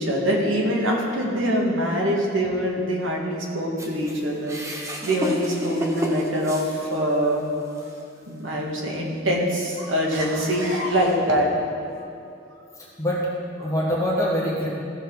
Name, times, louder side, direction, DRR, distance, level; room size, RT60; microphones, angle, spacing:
voice 1, 0.0-7.5 8.3-12.1 12.5-12.6, equal, 85° right, -2 dB, 1.9 m, -24 dB
sound 1, 3.8-7.2 7.7-7.9 8.8-8.9, equal, 15° right, 1.0 m, -29 dB
voice 2, 12.8-13.3 13.6-14.7, equal, 15° left, -5 dB, 1.7 m, -24 dB
15.0 x 6.8 x 4.0 m, 2.5 s
head